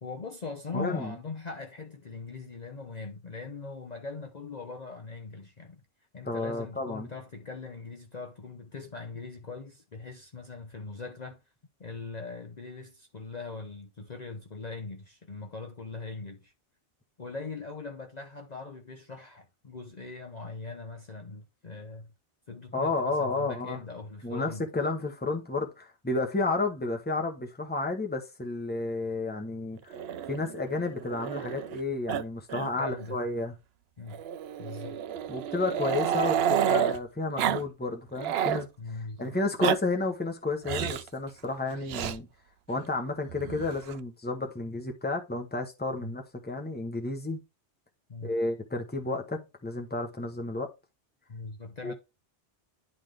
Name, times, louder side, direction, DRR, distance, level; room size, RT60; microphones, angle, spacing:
voice 1, 0.0-5.8 6.1-11.4 11.8-16.5 17.2-22.1 22.5-24.6 32.6-33.2 34.0-34.2 34.6-35.0 38.8-39.4 46.0-46.2 48.1-48.3 51.3-51.9, left 3 dB, 40° left, 0.9 m, -41 dB
voice 2, 0.7-1.1 6.2-7.1 22.7-23.8 24.2-29.9 30.3-33.6 35.3-42.3 42.7-47.4 48.2-50.7 51.8-51.9, left 3 dB, 10° left, 1.0 m, -31 dB
Growling, 29.9-31.8 32.1-32.2 32.5-32.7 33.0-33.1 34.1-37.0 37.4-37.6 37.9-38.6 39.4-39.8 40.6-41.1 41.9-42.2 43.3-44.0, right 9 dB, 70° right, 0.8 m, -30 dB
11.0 x 3.8 x 3.4 m
omnidirectional pair, 1.1 m